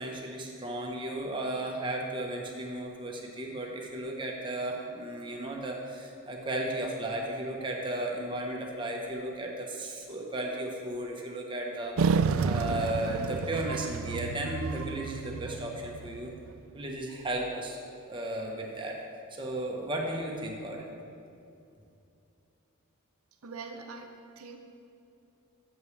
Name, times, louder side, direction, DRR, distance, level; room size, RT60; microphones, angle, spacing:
voice 1, 0.0-16.3 16.7-17.8 18.1-19.0 19.4-20.8, right 1 dB, 25° right, 0 dB, 1.1 m, -35 dB
sound 1, 12.0-16.5, right 5 dB, 70° right, 0.3 m, -31 dB
voice 2, 23.4-24.6, right 4 dB, 90° right, 3 dB, 0.8 m, -43 dB
13.5 x 7.2 x 3.3 m, 2.6 s
head